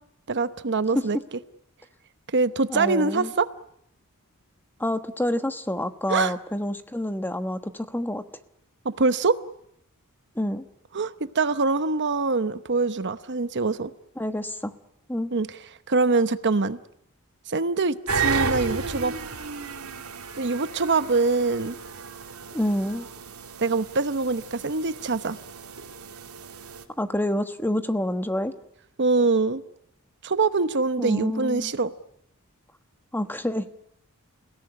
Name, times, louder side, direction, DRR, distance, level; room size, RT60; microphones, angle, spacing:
voice 1, 0.3-1.2 2.3-3.5 6.1-6.3 8.8-9.4 10.9-13.9 15.3-15.5 15.9-16.8 17.5-19.1 20.4-21.7 23.6-25.4 29.0-29.6 30.2-31.9, right 3 dB, 55° right, 12 dB, 0.9 m, -24 dB
voice 2, 2.7-3.3 4.8-8.2 10.3-10.6 14.2-14.7 15.1-15.3 22.5-23.1 27.0-28.5 31.0-31.7 33.1-33.6, left 1 dB, 10° left, 9 dB, 1.3 m, -28 dB
sound 1, 18.1-26.8, right 5 dB, 80° right, 2.7 m, -33 dB
29.0 x 17.5 x 9.9 m, 0.75 s
head